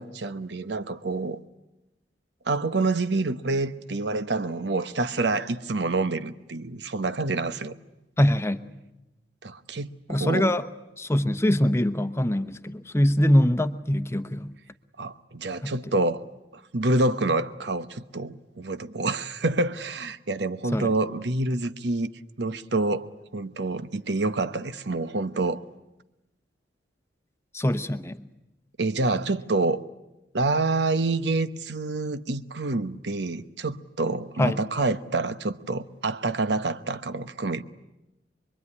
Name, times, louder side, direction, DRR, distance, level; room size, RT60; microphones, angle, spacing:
voice 1, 0.0-1.4 2.5-7.8 9.4-10.5 15.0-16.2 16.7-22.1 22.4-23.1 23.3-25.6 28.8-29.8 30.3-37.6, right 2 dB, 70° right, 1.0 m, -27 dB
voice 2, 8.2-8.6 10.1-10.7 11.0-14.5 15.6-15.7 20.7-20.9 27.5-28.2 34.4-34.6, left 1 dB, 15° left, 0.9 m, -23 dB
26.0 x 22.5 x 9.7 m
head